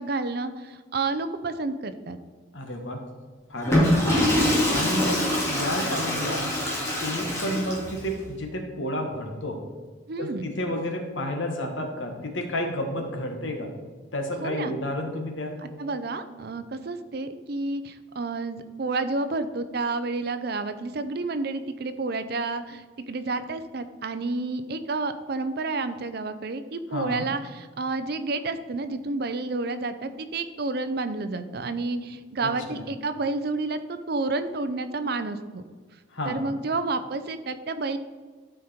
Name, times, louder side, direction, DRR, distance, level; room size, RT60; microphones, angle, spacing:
voice 1, 0.0-2.2 10.1-10.5 14.4-14.7 15.8-35.6 36.3-38.0, right 3 dB, 55° right, 11 dB, 0.6 m, -30 dB
voice 2, 2.5-3.0 3.5-4.1 4.7-6.6 7.0-9.6 10.2-13.7 14.1-15.6 26.9-27.3 32.4-32.8 36.1-36.4, left 1 dB, 90° left, 3 dB, 1.5 m, -31 dB
Water / Toilet flush, 3.6-8.1, left 1 dB, 15° left, 2.4 m, -24 dB
12.0 x 5.2 x 4.3 m, 1.5 s
head